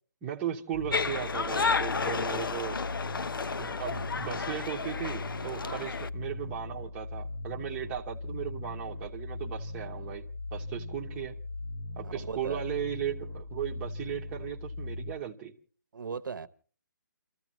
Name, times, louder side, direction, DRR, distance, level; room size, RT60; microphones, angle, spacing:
voice 1, 0.2-2.8 3.6-10.2 10.5-11.4 12.0-15.5, right 10 dB, 10° right, 0.9 m, -37 dB
sound 1, 0.7-15.1, left 2 dB, 20° left, 2.7 m, -39 dB
sound 2, 0.9-6.1, left 5 dB, 80° left, 0.8 m, -32 dB
voice 2, 12.0-12.6 15.9-16.5, right 5 dB, 65° right, 0.9 m, -38 dB
29.0 x 14.5 x 3.0 m
hypercardioid pair, 170°, 11 cm